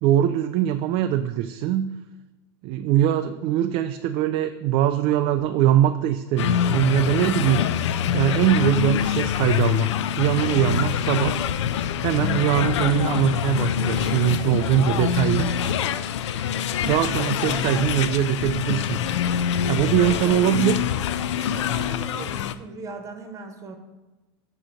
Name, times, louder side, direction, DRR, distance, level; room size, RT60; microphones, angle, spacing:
voice 1, 0.0-1.9 2.6-7.7 8.1-9.9 10.2-11.4 12.0-15.5 16.9-19.0 19.6-20.8, right 11 dB, 40° right, 8 dB, 0.4 m, -22 dB
sound 1, 6.4-22.5, left 9 dB, 85° left, 0.4 m, -25 dB
sound 2, 12.5-15.0 15.3-17.9, left 3 dB, 35° left, 2.1 m, -38 dB
voice 2, 19.7-20.4 21.3-23.8, right 3 dB, 20° right, 4 dB, 1.1 m, -39 dB
8.7 x 2.9 x 6.4 m, 1.1 s
supercardioid pair, 130°, 15 cm